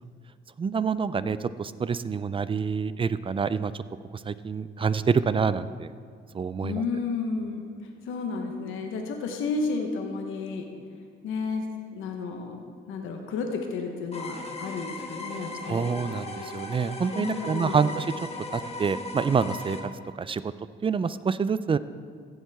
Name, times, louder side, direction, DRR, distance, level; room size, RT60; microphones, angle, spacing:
voice 1, 0.6-3.8 4.1-5.9 6.3-6.8 15.7-18.1 18.5-19.9 20.2-20.5 20.8-21.8, right 5 dB, 25° right, 15 dB, 0.4 m, -27 dB
voice 2, 6.6-10.7 11.2-11.6 11.9-15.9 17.2-17.9, left 4 dB, 85° left, 2 dB, 1.1 m, -32 dB
sound 1, 14.1-19.8, left 2 dB, 30° left, 1.3 m, -37 dB
15.5 x 7.4 x 3.5 m, 2.3 s
cardioid pair, 90°, 20 cm